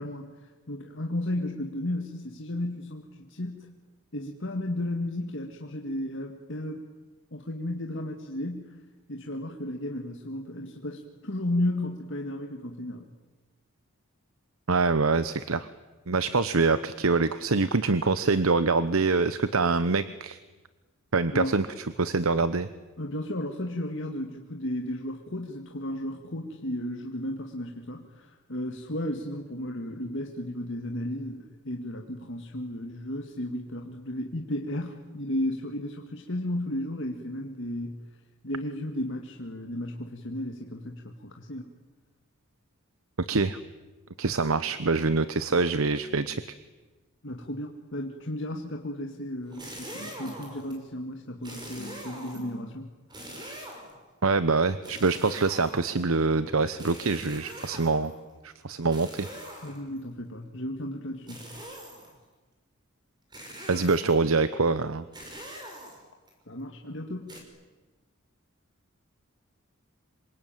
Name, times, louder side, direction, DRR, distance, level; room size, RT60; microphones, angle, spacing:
voice 1, 0.0-3.7 4.1-6.8 7.3-8.8 9.1-13.1 21.3-21.6 23.0-38.0 38.4-41.7 47.2-52.9 59.6-61.5 66.5-67.4, left 1 dB, 60° left, 2 dB, 2.0 m, -34 dB
voice 2, 14.7-15.7 16.1-20.4 21.1-21.7 22.0-22.7 43.3-43.6 44.2-46.4 54.2-58.1 58.4-59.3 63.7-65.0, right 4 dB, 75° right, 14 dB, 0.9 m, -25 dB
sound 1, 49.4-50.8 51.4-52.6 53.1-54.0 54.8-56.1 56.8-58.2 58.9-60.0 61.3-62.2 63.3-64.2 65.1-66.3 67.3-67.4, right 1 dB, 20° right, 5.6 m, -43 dB
27.0 x 24.0 x 9.1 m, 1.2 s
head